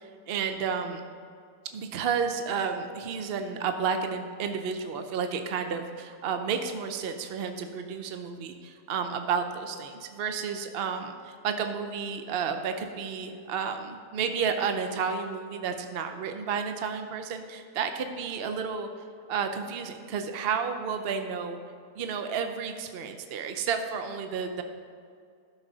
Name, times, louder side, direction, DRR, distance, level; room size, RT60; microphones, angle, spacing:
voice 1, 0.0-1.0 1.7-18.9 19.3-21.6 22.0-24.6, right 6 dB, 60° right, 6 dB, 0.6 m, -31 dB
12.5 x 6.2 x 3.9 m, 2.3 s
omnidirectional pair, 1.7 m